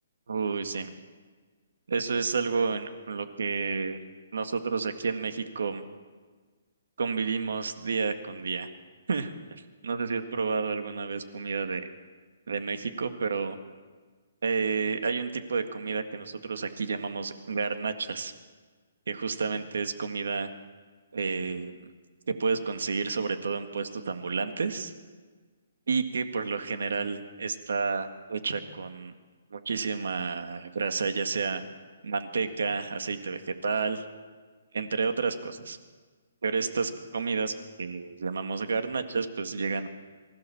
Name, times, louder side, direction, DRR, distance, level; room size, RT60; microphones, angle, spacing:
voice 1, 0.3-0.9 1.9-4.0 4.3-5.8 7.0-8.7 9.1-11.9 12.5-13.6 14.4-18.3 19.1-20.5 21.1-21.9 22.3-24.9 25.9-29.1 29.5-31.6 32.0-34.0 34.7-35.8 36.4-39.9, right 5 dB, 75° right, 8 dB, 1.9 m, -30 dB
24.5 x 15.5 x 7.2 m, 1.4 s
hypercardioid pair, 175°, 0 cm